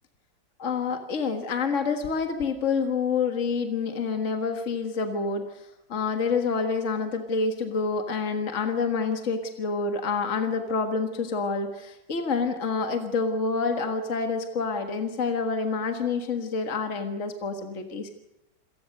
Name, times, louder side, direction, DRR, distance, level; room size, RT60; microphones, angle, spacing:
voice 1, 0.6-18.1, left 4 dB, 45° left, 5 dB, 1.9 m, -28 dB
26.5 x 19.0 x 6.6 m, 0.89 s
omnidirectional pair, 1.8 m